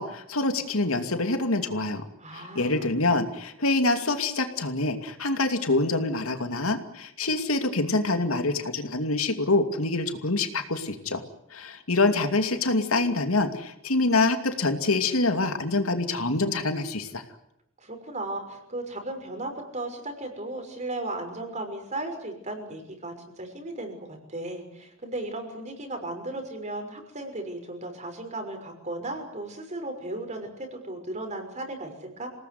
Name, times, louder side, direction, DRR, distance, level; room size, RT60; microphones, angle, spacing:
voice 1, 0.0-2.0 2.3-11.2 11.5-17.2, left 2 dB, 85° left, 7 dB, 2.6 m, -26 dB
voice 2, 2.2-2.9 17.8-32.3, right 2 dB, 35° right, 5 dB, 6.0 m, -36 dB
27.5 x 19.0 x 9.5 m, 0.79 s
head